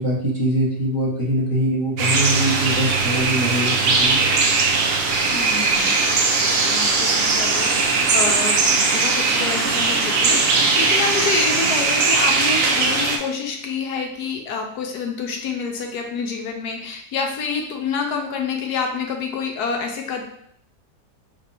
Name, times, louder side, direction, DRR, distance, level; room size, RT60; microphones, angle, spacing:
voice 1, 0.0-4.4, equal, 20° right, -7 dB, 1.7 m, -23 dB
sound 1, 2.0-13.2, right 4 dB, 70° right, 0.5 m, -19 dB
voice 2, 5.3-20.2, left 5 dB, 75° left, 3 dB, 1.2 m, -28 dB
5.1 x 3.3 x 2.8 m, 0.68 s
omnidirectional pair, 1.8 m